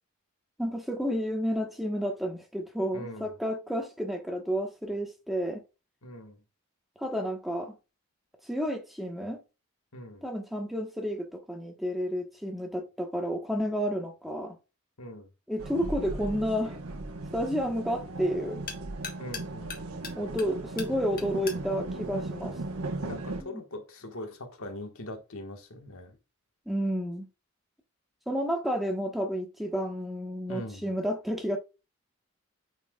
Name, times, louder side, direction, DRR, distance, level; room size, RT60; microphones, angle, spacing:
voice 1, 0.6-5.6 7.0-7.8 8.5-9.4 10.2-14.6 15.5-16.8 17.3-18.6 20.2-22.6 23.4-23.6 26.7-27.3 28.3-31.6, equal, ahead, 1.1 m, -31 dB
voice 2, 2.9-3.3 6.0-6.4 9.9-10.2 15.0-15.3 19.2-20.0 23.0-26.2 30.5-30.9, left 1 dB, 75° left, 1.5 m, -41 dB
sound 1, 15.6-23.2, left 5 dB, 40° left, 1.3 m, -46 dB
sound 2, 15.6-23.4, right 2 dB, 80° right, 1.1 m, -37 dB
9.1 x 4.7 x 2.3 m
head